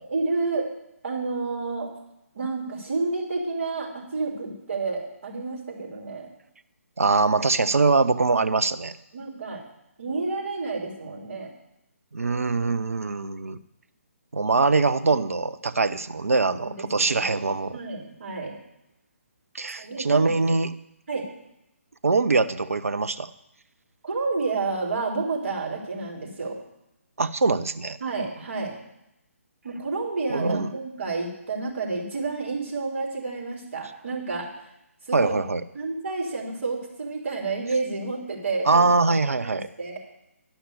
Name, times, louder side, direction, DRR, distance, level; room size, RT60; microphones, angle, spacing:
voice 1, 0.1-0.7 1.0-1.9 2.4-6.3 9.1-9.6 10.0-11.5 16.5-17.3 17.7-18.5 19.8-20.3 21.1-21.2 24.0-26.6 28.0-28.8 29.6-34.5 35.1-35.3 35.7-38.9 39.4-40.0, right 3 dB, 55° right, -2 dB, 3.9 m, -30 dB
voice 2, 7.0-9.0 12.1-13.6 14.3-17.7 19.5-20.7 22.0-23.3 27.2-28.0 30.3-30.7 35.1-35.6 38.7-39.7, right 3 dB, 75° right, 10 dB, 0.7 m, -23 dB
11.5 x 5.8 x 8.4 m, 0.85 s
figure-of-eight pair, 140°, 8 cm